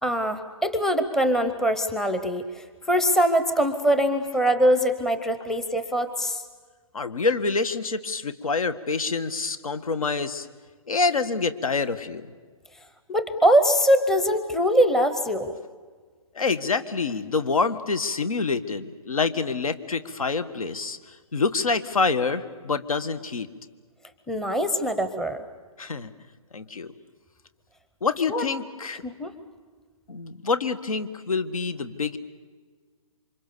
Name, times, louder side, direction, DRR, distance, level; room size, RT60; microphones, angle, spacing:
voice 1, 0.0-2.5 2.9-6.4 13.1-15.6 24.3-25.4 28.3-28.4 29.0-29.3, equal, ahead, 9 dB, 0.8 m, -22 dB
voice 2, 6.9-10.5 10.9-12.3 16.3-23.5 25.8-26.1 26.5-26.9 28.0-29.0 30.1-32.2, left 4 dB, 75° left, 12 dB, 1.7 m, -26 dB
28.0 x 25.0 x 6.9 m, 1.5 s
hypercardioid pair, 150°, 18 cm